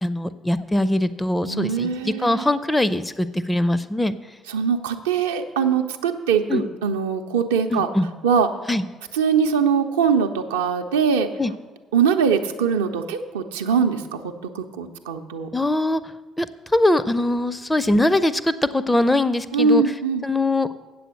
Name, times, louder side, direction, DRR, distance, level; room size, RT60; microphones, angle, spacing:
voice 1, 0.0-4.1 6.5-6.6 7.7-8.1 8.7-8.8 11.4-11.5 15.5-16.0 16.4-16.5 16.7-19.8 20.2-20.7, left 1 dB, 10° left, 15 dB, 0.5 m, -21 dB
voice 2, 1.5-2.5 4.5-7.9 8.2-8.5 9.1-11.3 11.9-15.5 19.5-20.2, right 6 dB, 75° right, 5 dB, 0.6 m, -22 dB
7.9 x 7.7 x 6.4 m, 1.3 s
figure-of-eight pair, 45°, 0 cm